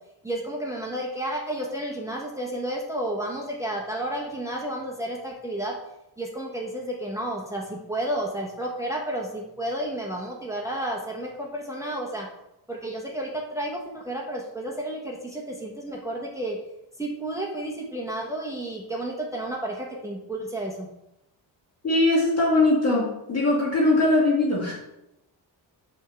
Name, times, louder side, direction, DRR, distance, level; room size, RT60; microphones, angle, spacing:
voice 1, 0.2-5.7 6.2-12.3 12.7-16.6 17.0-20.9, right 1 dB, 5° right, -1 dB, 1.1 m, -31 dB
voice 2, 21.8-24.7, left 2 dB, 35° left, -4 dB, 1.9 m, -21 dB
9.1 x 3.6 x 6.7 m, 0.88 s
wide cardioid pair, 140°, 46 cm